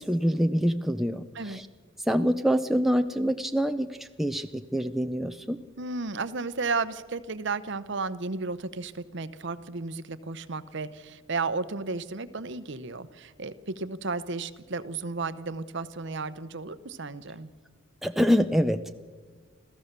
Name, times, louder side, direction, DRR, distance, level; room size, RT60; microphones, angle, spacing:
voice 1, 0.0-1.7 2.1-5.6 18.0-18.9, equal, ahead, 7 dB, 0.5 m, -26 dB
voice 2, 5.8-17.5, right 4 dB, 55° right, 14 dB, 0.8 m, -33 dB
26.5 x 15.5 x 6.7 m, 1.5 s
head